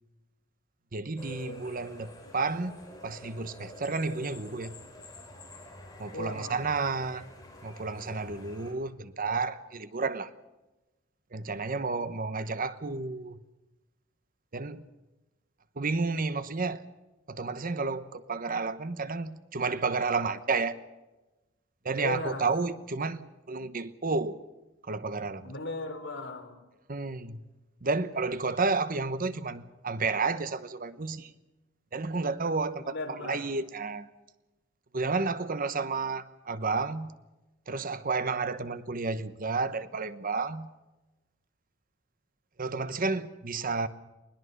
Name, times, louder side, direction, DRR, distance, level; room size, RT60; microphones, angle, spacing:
voice 1, 0.9-4.7 6.0-7.2 7.6-10.3 11.3-13.4 14.5-14.8 15.8-16.8 17.3-20.8 21.8-24.4 24.8-25.5 26.9-27.4 27.8-31.3 31.9-32.9 33.2-34.1 34.9-37.1 37.7-40.7 42.6-43.9, right 4 dB, 45° right, 1.0 m, -31 dB
sound 1, 1.2-8.7, left 1 dB, 20° left, 5.4 m, -47 dB
voice 2, 6.1-6.6 22.0-22.5 25.4-26.6 32.8-33.5, left 2 dB, 65° left, 3.8 m, -36 dB
21.0 x 20.5 x 6.6 m
head